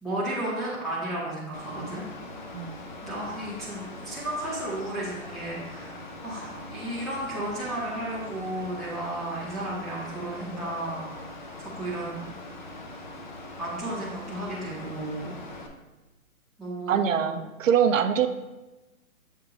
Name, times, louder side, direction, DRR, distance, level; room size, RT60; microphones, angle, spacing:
voice 1, 0.0-2.1 3.0-11.3 11.6-12.3 13.6-15.3 16.6-17.4, right 1 dB, ahead, -9 dB, 0.8 m, -33 dB
Mechanical fan, 1.5-15.7, left 2 dB, 35° left, 0.4 m, -42 dB
voice 2, 16.9-18.3, right 8 dB, 65° right, 10 dB, 0.5 m, -23 dB
7.2 x 3.6 x 3.8 m, 1.1 s
hypercardioid pair, 150°, 43 cm